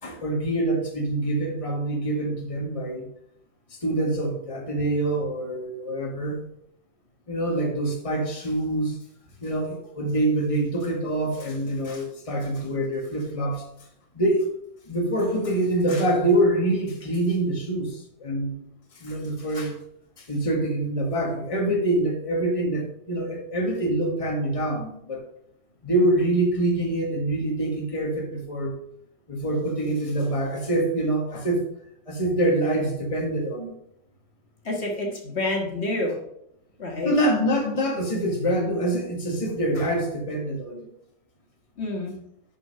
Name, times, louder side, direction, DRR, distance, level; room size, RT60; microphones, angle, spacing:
voice 1, 0.0-3.1 3.8-6.4 7.3-9.0 9.4-13.6 14.1-14.5 14.9-18.6 18.9-19.8 20.2-25.2 25.8-28.7 29.3-31.6 32.1-33.7 37.0-40.9, right 1 dB, 25° left, 0 dB, 1.6 m, -25 dB
voice 2, 34.7-36.2 36.8-37.1 41.8-42.2, left 2 dB, 55° left, 0 dB, 1.8 m, -28 dB
7.3 x 5.2 x 6.4 m, 0.75 s
omnidirectional pair, 1.3 m